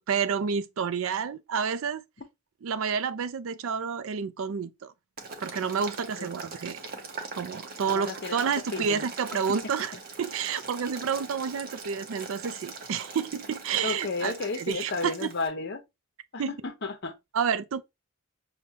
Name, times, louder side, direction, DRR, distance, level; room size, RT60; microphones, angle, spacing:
voice 1, 0.1-2.0 2.6-4.9 5.4-6.8 7.3-9.9 10.2-15.3 16.4-16.5 17.3-17.8, right 6 dB, 70° right, 0.4 m, -29 dB
Boiling, 5.2-15.5, right 4 dB, 40° right, 0.7 m, -41 dB
voice 2, 7.9-8.4 8.7-9.1 9.5-9.6 13.8-15.8 16.3-17.1, left 3 dB, 50° left, 0.7 m, -33 dB
6.0 x 2.2 x 2.7 m
head